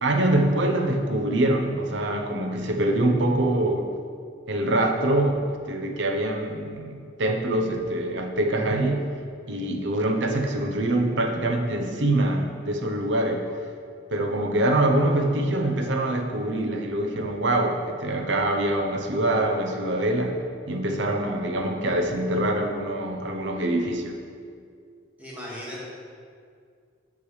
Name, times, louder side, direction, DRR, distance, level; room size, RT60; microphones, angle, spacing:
voice 1, 0.0-3.9 4.5-9.0 9.5-13.5 14.1-20.3 20.7-24.2, right 1 dB, 75° right, 3 dB, 0.8 m, -24 dB
voice 2, 25.2-25.8, left 1 dB, 10° right, -7 dB, 1.9 m, -36 dB
8.3 x 6.6 x 3.2 m, 2.2 s
head